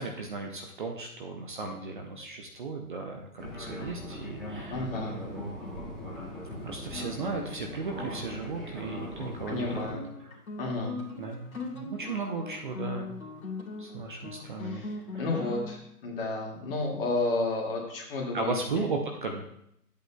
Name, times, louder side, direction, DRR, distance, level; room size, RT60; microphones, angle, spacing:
voice 1, 0.0-5.5 6.6-10.3 11.2-13.2 13.8-14.9 15.1-15.3 18.3-19.4, right 4 dB, 35° right, 2 dB, 0.7 m, -36 dB
Fixed-wing aircraft airplane, 3.4-9.9, left 1 dB, ahead, 2.2 m, -40 dB
voice 2, 4.7-5.1 9.5-10.0 10.6-10.9 14.6-14.9 15.2-18.8, left 2 dB, 35° left, -2 dB, 2.2 m, -31 dB
Guitar, 5.7-15.8, left 3 dB, 65° left, 1.8 m, -41 dB
12.0 x 8.2 x 2.3 m, 0.75 s
figure-of-eight pair, 140°, 46 cm